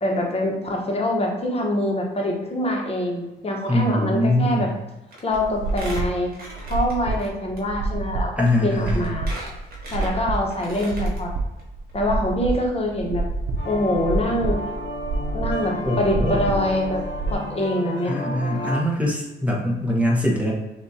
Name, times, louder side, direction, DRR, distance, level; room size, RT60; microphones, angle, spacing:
voice 1, 0.0-4.7 5.2-6.3 6.7-9.3 9.9-11.3 11.9-13.2 13.7-14.6 15.3-17.0 17.3-18.2, left 1 dB, 30° left, 0 dB, 1.2 m, -24 dB
voice 2, 3.7-4.7 8.4-9.0 15.8-16.4 18.0-20.5, left 1 dB, 5° right, -3 dB, 1.1 m, -22 dB
Squeak, 5.1-5.4 5.7-7.3 7.6-7.7 8.4-8.5 8.9-11.2 11.6-11.7 11.9-12.0, right 1 dB, 50° right, 1.5 m, -39 dB
sound 1, 5.3-17.4, right 3 dB, 75° right, 0.6 m, -28 dB
sound 2, 13.6-18.8, left 1 dB, 70° left, 1.1 m, -31 dB
6.3 x 2.6 x 2.8 m, 1.0 s
cardioid pair, 90°, 20 cm